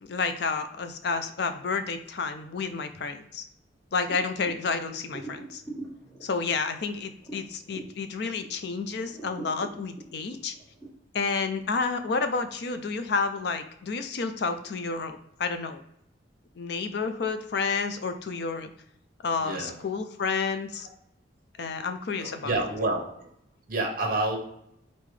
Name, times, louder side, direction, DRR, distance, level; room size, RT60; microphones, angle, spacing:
voice 1, 0.0-3.4 3.9-5.6 6.2-10.5 11.1-15.8 16.6-18.7 19.2-20.9 21.6-22.6, left 4 dB, 55° left, 9 dB, 0.4 m, -30 dB
sound 1, 4.1-8.7 9.0-10.9, right 2 dB, 15° left, 1.5 m, -43 dB
voice 2, 22.2-23.1 23.7-24.4, right 2 dB, 45° right, 2 dB, 0.9 m, -28 dB
3.8 x 3.7 x 3.2 m, 0.76 s
head